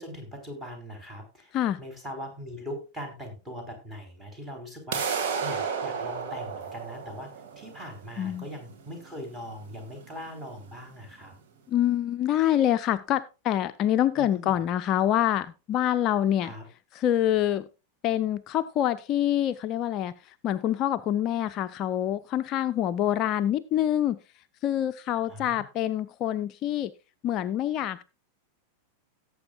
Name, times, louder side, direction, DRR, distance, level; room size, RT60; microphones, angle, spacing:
voice 1, 0.0-1.5 1.8-11.3 14.2-14.5 16.4-16.6 25.3-25.6, equal, 15° right, 2 dB, 3.9 m, -41 dB
sound 1, 4.9-10.9, right 6 dB, 50° right, 2.0 m, -33 dB
voice 2, 11.7-16.5 16.9-17.7 18.0-24.2 24.6-26.9 27.2-28.0, left 11 dB, 35° left, 12 dB, 0.4 m, -26 dB
17.5 x 7.7 x 2.4 m, 0.29 s
figure-of-eight pair, 90°, 0 cm